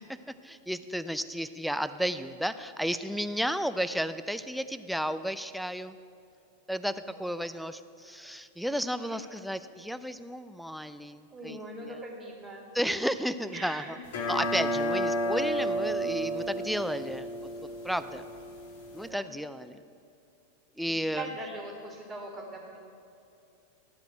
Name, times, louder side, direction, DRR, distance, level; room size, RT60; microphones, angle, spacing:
voice 1, 0.4-6.0 6.7-6.9 7.2-12.0 12.7-14.0 14.3-17.3 17.6-18.3 18.9-19.8 20.8-21.3, equal, ahead, 11 dB, 0.4 m, -33 dB
voice 2, 7.0-7.3 9.1-9.2 11.3-12.6 13.5-14.0 19.0-19.3 20.9-22.8, right 2 dB, 20° right, -1 dB, 1.8 m, -41 dB
sound 1, 14.1-19.1, equal, 55° left, 1.5 m, -32 dB
12.0 x 4.9 x 7.8 m, 2.6 s
figure-of-eight pair, 90°, 0 cm